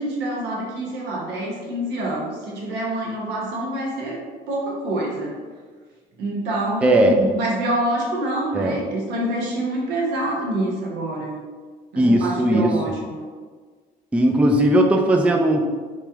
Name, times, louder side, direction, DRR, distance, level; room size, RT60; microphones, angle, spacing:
voice 1, 0.0-4.2 4.5-5.3 6.2-11.4 11.9-13.2, right 1 dB, 80° right, -2 dB, 1.0 m, -26 dB
voice 2, 6.8-7.3 8.5-8.8 12.0-12.7 14.1-15.6, right 1 dB, 5° right, 3 dB, 0.3 m, -17 dB
3.2 x 3.0 x 3.4 m, 1.5 s
cardioid pair, 110°, 17 cm